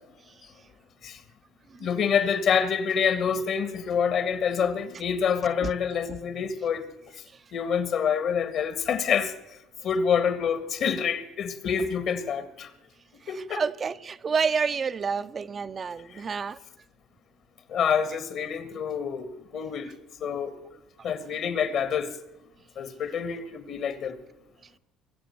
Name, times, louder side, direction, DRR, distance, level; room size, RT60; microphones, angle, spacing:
voice 1, 1.8-6.8 7.5-9.3 9.8-12.7 13.3-13.6 17.7-19.3 19.5-19.9 20.2-20.5 21.0-22.1 22.8-24.1, left 7 dB, 60° left, 1.8 m, -27 dB
voice 2, 13.2-16.6, right 5 dB, 35° right, 0.6 m, -29 dB
23.0 x 7.8 x 6.8 m
supercardioid pair, 75°, 0 cm